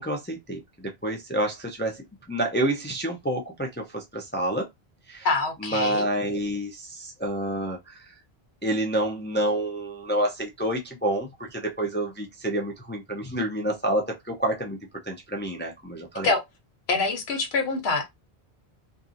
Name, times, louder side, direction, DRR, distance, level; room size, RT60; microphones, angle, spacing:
voice 1, 0.0-4.7 5.1-5.3 5.6-8.1 8.6-14.8 15.0-16.3, right 1 dB, 15° left, 0.4 m, -28 dB
voice 2, 5.2-6.1 16.2-16.4 16.9-18.1, left 3 dB, 75° left, 1.1 m, -25 dB
2.8 x 2.6 x 2.5 m
omnidirectional pair, 1.1 m